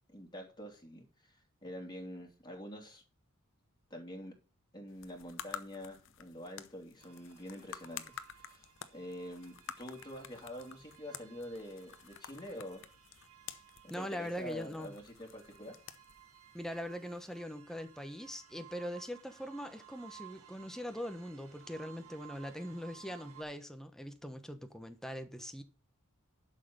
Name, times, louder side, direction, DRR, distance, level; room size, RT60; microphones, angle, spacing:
voice 1, 0.1-3.0 3.9-4.3 4.7-8.7 8.9-12.8 13.9-15.7, equal, 20° left, 3.0 m, -46 dB
sound 1, 4.9-17.4, left 8 dB, 55° left, 0.9 m, -51 dB
sound 2, 7.0-23.4, right 11 dB, 75° right, 2.8 m, -58 dB
voice 2, 13.9-15.0 16.5-25.6, equal, ahead, 1.1 m, -42 dB
11.5 x 6.5 x 5.4 m
head